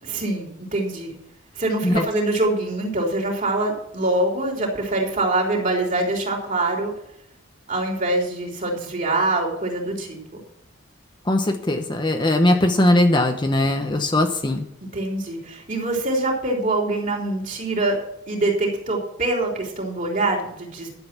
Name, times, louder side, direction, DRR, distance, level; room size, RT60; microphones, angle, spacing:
voice 1, 0.0-1.1 1.6-6.9 7.7-10.2 14.9-18.0 18.3-20.9, right 2 dB, 40° right, 0 dB, 3.5 m, -24 dB
voice 2, 11.2-14.7, left 1 dB, 25° left, 5 dB, 1.0 m, -20 dB
12.0 x 7.8 x 6.0 m, 0.75 s
head